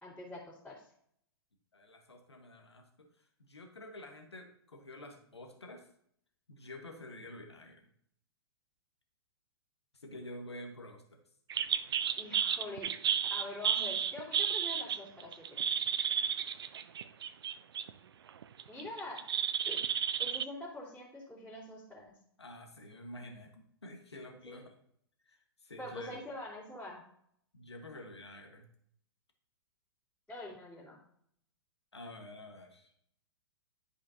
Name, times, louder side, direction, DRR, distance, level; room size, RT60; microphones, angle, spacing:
voice 1, 0.0-0.9 12.2-12.9 13.3-15.7 18.7-19.2 19.6-19.8 20.2-22.1 24.4-24.6 25.8-27.0 30.3-31.0, left 1 dB, 5° left, -10 dB, 2.8 m, -45 dB
voice 2, 1.7-2.8 3.2-5.9 6.5-7.9 9.9-11.2 22.4-24.7 25.2-26.2 27.5-28.6 31.9-32.9, left 1 dB, 85° left, 3 dB, 1.3 m, -49 dB
sound 1, 11.5-17.9 18.3-20.4, right 8 dB, 65° right, 0.5 m, -32 dB
11.5 x 5.0 x 2.8 m, 0.68 s
figure-of-eight pair, 115°, 14 cm